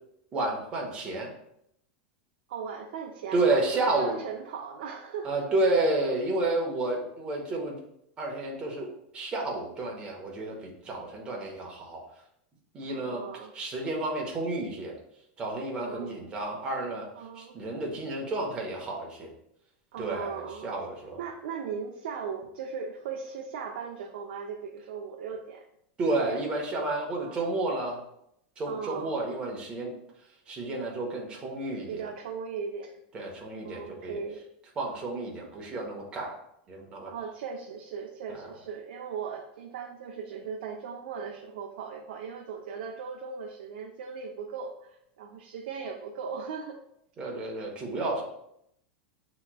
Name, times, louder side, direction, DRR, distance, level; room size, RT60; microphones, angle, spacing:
voice 1, 0.3-1.3 3.3-4.2 5.2-7.8 8.2-8.9 9.1-12.0 12.7-13.2 13.5-14.9 15.4-17.1 17.4-19.3 20.0-21.2 26.0-28.0 28.6-29.9 30.5-31.9 33.1-34.1 34.8-36.4 36.7-37.1 47.2-48.2, right 2 dB, 20° right, -1 dB, 0.9 m, -30 dB
voice 2, 2.5-5.4 12.9-13.5 15.8-16.3 17.1-17.6 19.9-20.7 21.2-25.7 26.0-26.4 26.8-26.9 27.2-27.8 28.7-29.1 31.9-33.0 33.6-34.4 37.1-46.8, right 6 dB, 75° right, 1 dB, 0.5 m, -38 dB
7.3 x 2.9 x 2.2 m, 0.76 s
supercardioid pair, 170°, 5 cm